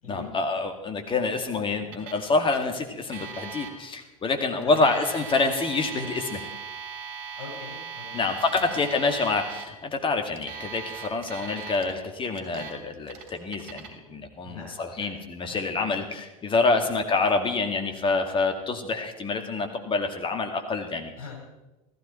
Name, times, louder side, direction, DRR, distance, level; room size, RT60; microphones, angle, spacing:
voice 1, 0.1-6.5 8.1-21.1, left 3 dB, 30° left, 6 dB, 2.2 m, -27 dB
Alarm, 1.9-2.2 2.5-2.6 3.1-3.7 4.6-9.6 10.4-11.9 12.3-12.7 13.1-13.9, right 7 dB, 55° right, 2.7 m, -39 dB
voice 2, 4.6-4.9 7.4-8.9 14.4-15.1 15.4-16.0 16.7-16.9 21.1-21.4, left 5 dB, 75° left, 0 dB, 5.2 m, -43 dB
15.5 x 14.5 x 4.4 m, 1.0 s
figure-of-eight pair, 75°, 18 cm